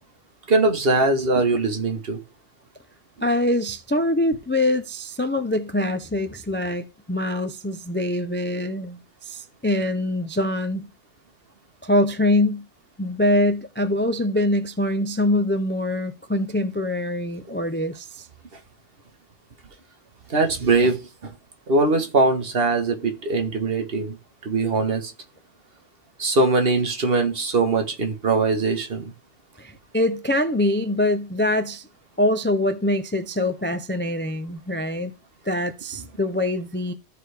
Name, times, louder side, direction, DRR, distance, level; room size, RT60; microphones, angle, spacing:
voice 1, 0.5-2.2 20.3-21.3 21.7-24.2 24.4-25.1 26.2-29.1, right 3 dB, 55° right, 1.5 m, -21 dB
voice 2, 3.2-10.9 11.8-12.6 13.0-18.3 29.6-31.9 32.2-35.1 35.4-36.9, left 1 dB, 15° left, 0.4 m, -24 dB
14.0 x 4.7 x 3.4 m
omnidirectional pair, 1.2 m